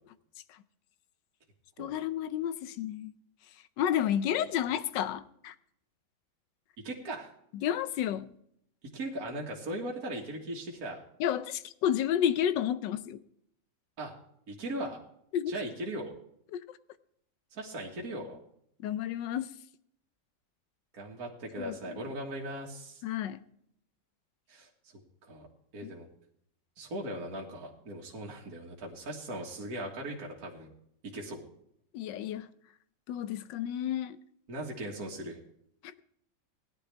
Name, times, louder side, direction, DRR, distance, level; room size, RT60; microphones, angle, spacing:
voice 1, 1.8-3.1 3.8-5.5 7.5-8.3 11.2-13.2 15.3-15.5 16.5-16.6 18.8-19.5 21.6-22.0 23.0-23.4 25.8-25.9 31.9-32.5 33.1-34.2, left 10 dB, 80° left, 1.3 m, -31 dB
voice 2, 6.8-7.3 8.8-11.0 14.0-14.1 14.5-15.0 15.5-16.1 17.5-18.4 20.9-23.0 24.5-24.7 25.2-25.5 25.7-26.1 26.8-30.7 31.0-31.4 34.5-35.4, right 1 dB, 55° right, 2.1 m, -38 dB
17.0 x 11.5 x 3.4 m
omnidirectional pair, 2.0 m